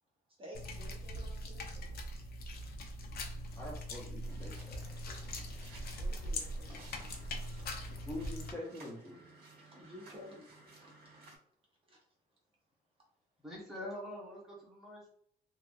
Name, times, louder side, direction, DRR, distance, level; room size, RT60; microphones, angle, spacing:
voice 1, 0.4-2.0 6.0-7.1 9.7-10.5 10.7-11.2 11.9-12.0, equal, 30° right, -2 dB, 0.6 m, -53 dB
sound 1, 0.5-8.5, equal, 65° left, 0.5 m, -41 dB
voice 2, 3.5-4.8 8.1-9.2, left 1 dB, 15° left, -5 dB, 0.5 m, -45 dB
sound 2, 4.2-11.4, right 3 dB, 60° right, 1.4 m, -58 dB
voice 3, 13.4-15.1, left 1 dB, ahead, -5 dB, 0.9 m, -45 dB
3.0 x 2.3 x 2.3 m, 0.67 s
cardioid pair, 155°, 18 cm